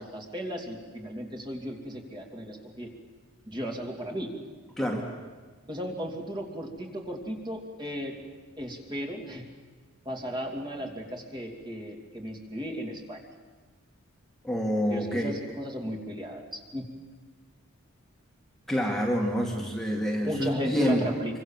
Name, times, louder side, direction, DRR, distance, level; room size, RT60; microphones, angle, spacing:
voice 1, 0.0-2.9 3.5-4.3 5.7-8.2 8.6-9.4 10.0-13.2 14.9-16.9 19.3-19.4 20.2-21.4, equal, 20° right, 1 dB, 3.0 m, -35 dB
voice 2, 4.8-5.1 14.4-15.3 18.7-21.2, equal, ahead, -1 dB, 2.3 m, -27 dB
26.0 x 25.0 x 7.4 m, 1.3 s
head